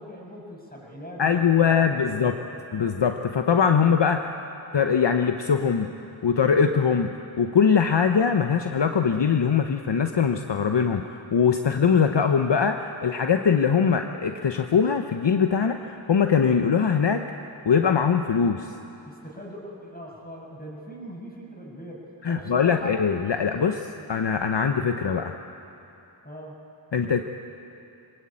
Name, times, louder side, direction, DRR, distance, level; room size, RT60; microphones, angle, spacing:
voice 1, 0.0-2.6 18.4-18.5 19.0-23.0 23.8-24.0 26.2-26.6, equal, 20° left, -2 dB, 7.3 m, -41 dB
voice 2, 1.2-2.4 2.7-4.3 4.7-5.9 6.2-17.2 17.7-18.7 22.2-25.3 26.9-27.2, left 6 dB, 60° left, 6 dB, 1.0 m, -22 dB
23.0 x 19.5 x 8.6 m, 2.8 s
cardioid pair, 40°, 48 cm